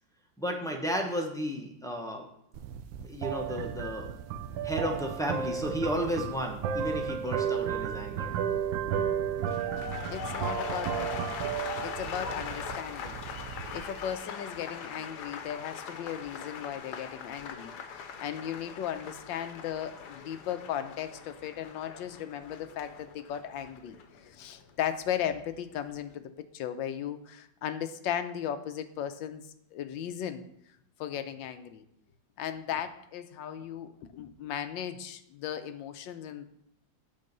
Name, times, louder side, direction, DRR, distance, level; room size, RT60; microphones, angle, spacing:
voice 1, 0.4-2.3 3.0-4.1 4.6-8.3, equal, 5° left, 1 dB, 0.5 m, -33 dB
sound 1, 2.5-14.1, right 8 dB, 85° right, 1.4 m, -33 dB
sound 2, 9.4-25.4 25.7-26.2, left 6 dB, 65° left, 1.3 m, -41 dB
voice 2, 10.1-11.3 11.8-24.0 24.2-30.4 31.0-31.8 32.4-36.4, left 9 dB, 90° left, 9 dB, 1.4 m, -36 dB
9.1 x 3.9 x 6.6 m, 0.75 s
omnidirectional pair, 2.0 m